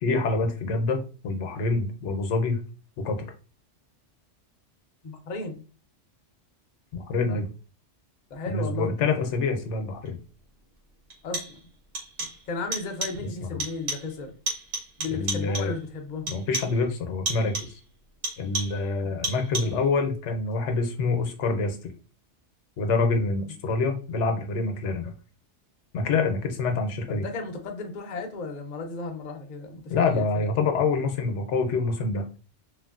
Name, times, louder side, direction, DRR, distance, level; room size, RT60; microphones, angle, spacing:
voice 1, 0.0-2.6 3.0-3.3 6.9-7.5 8.5-10.2 13.4-13.6 15.1-15.7 16.3-17.8 18.4-21.8 22.8-25.1 25.9-27.2 29.9-32.4, left 3 dB, 75° left, 5 dB, 0.9 m, -26 dB
voice 2, 5.0-5.6 7.3-7.4 8.3-8.9 11.2-11.6 12.5-14.4 15.0-16.2 23.5-23.6 27.1-30.3, left 3 dB, 50° left, 4 dB, 0.6 m, -34 dB
sound 1, 10.1-10.2 11.1-11.7 11.9-12.5 12.7-13.3 13.6-14.2 14.5-15.8 16.3-16.8 17.3-17.8 18.2-18.9 19.2-19.9, right 2 dB, 85° right, 1.2 m, -33 dB
3.1 x 2.5 x 2.3 m, 0.35 s
omnidirectional pair, 1.2 m